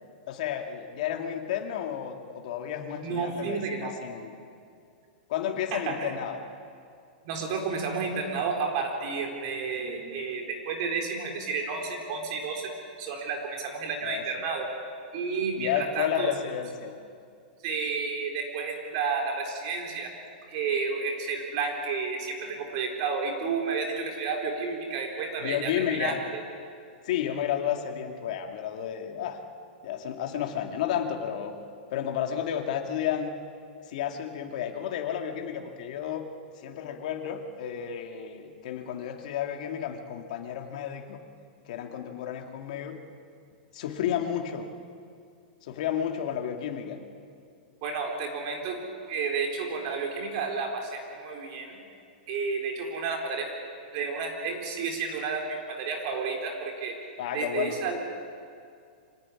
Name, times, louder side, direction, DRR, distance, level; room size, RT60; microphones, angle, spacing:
voice 1, 0.3-4.3 5.3-6.4 14.0-14.2 15.6-17.0 25.4-26.2 27.0-29.4 29.8-31.5 31.9-33.4 33.9-36.3 36.6-41.2 41.7-43.0 43.7-44.7 45.6-47.0 57.2-57.8, left 9 dB, 50° left, 4 dB, 2.6 m, -32 dB
voice 2, 3.0-4.0 5.7-6.1 7.2-12.7 13.0-14.7 15.1-16.3 17.6-20.1 20.5-26.2 47.8-48.8 49.0-51.8 52.3-53.5 53.9-57.0 57.3-58.1, right 5 dB, 35° right, 2 dB, 4.0 m, -31 dB
25.5 x 17.0 x 9.9 m, 2.4 s
supercardioid pair, 170°, 5 cm